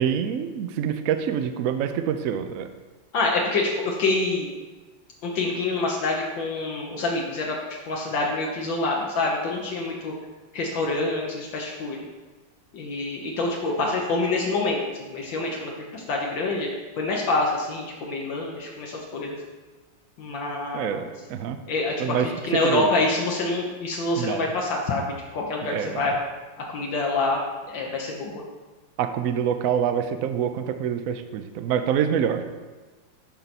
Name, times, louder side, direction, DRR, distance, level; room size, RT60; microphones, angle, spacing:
voice 1, 0.0-2.7 20.7-21.6 22.0-22.3 22.6-22.9 24.2-24.5 25.7-26.1 29.0-32.4, right 8 dB, 70° right, 8 dB, 0.8 m, -26 dB
voice 2, 3.1-4.5 5.2-10.1 10.5-12.0 12.7-16.7 17.0-19.3 20.2-21.1 21.7-26.1 26.6-27.4 27.7-28.4, left 2 dB, 75° left, -1 dB, 1.6 m, -26 dB
12.0 x 4.5 x 4.1 m, 1.3 s
omnidirectional pair, 2.1 m